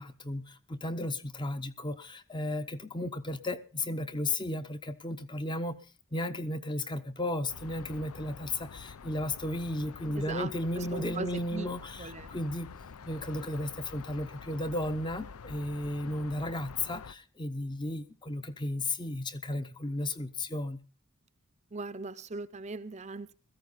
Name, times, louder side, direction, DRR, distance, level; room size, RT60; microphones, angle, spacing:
voice 1, 0.0-5.9 6.1-12.8 13.1-20.8, left 1 dB, 20° left, 0.7 m, -34 dB
sound 1, 7.5-17.1, left 5 dB, 85° left, 0.6 m, -47 dB
voice 2, 10.2-11.7 12.0-12.3 21.7-23.3, right 3 dB, 30° right, 0.6 m, -39 dB
16.5 x 14.0 x 4.1 m
head